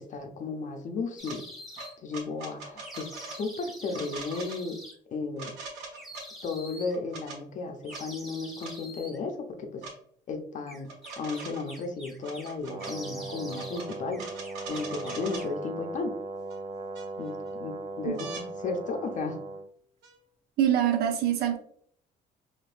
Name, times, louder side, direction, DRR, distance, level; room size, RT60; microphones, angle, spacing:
voice 1, 0.0-1.4 2.0-4.8 5.1-5.5 6.4-9.9 10.3-10.9 11.2-14.2 14.7-16.1 17.2-19.4, left 4 dB, 45° left, 4 dB, 0.6 m, -34 dB
sound 1, 1.2-1.9 2.8-4.9 5.9-7.0 7.8-9.2 10.7-12.5 12.8-13.9 14.1-15.6, equal, ahead, 1.2 m, -46 dB
sound 2, 1.2-1.4 1.8-3.4 3.9-4.6 5.4-6.3 6.9-7.4 7.9-8.0 8.6-8.8 9.8-9.9 10.8-11.7 12.2-12.9 13.5-15.5 16.5-16.6 16.9-17.5 18.2-18.5 20.0-20.1, right 3 dB, 90° right, 1.2 m, -41 dB
Brass instrument, 12.7-19.7, right 3 dB, 35° right, 0.5 m, -38 dB
voice 2, 20.6-21.6, right 10 dB, 70° right, 4 dB, 0.7 m, -24 dB
4.2 x 3.0 x 2.5 m, 0.63 s
cardioid pair, 110°, 17 cm